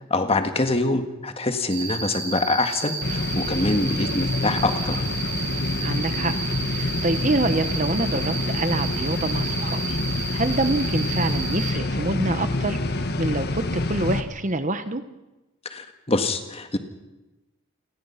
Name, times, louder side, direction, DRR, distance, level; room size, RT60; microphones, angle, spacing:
voice 1, 0.1-5.0 15.7-16.8, left 2 dB, 25° left, 7 dB, 1.7 m, -25 dB
Cricket, 1.7-11.7, right 4 dB, 50° right, 6.9 m, -32 dB
sound 1, 3.0-14.2, left 2 dB, 45° left, 1.5 m, -27 dB
voice 2, 5.8-6.3 6.6-10.0 10.3-13.6 13.9-15.0, right 2 dB, 35° right, 11 dB, 1.0 m, -26 dB
28.5 x 20.0 x 5.8 m, 1.1 s
head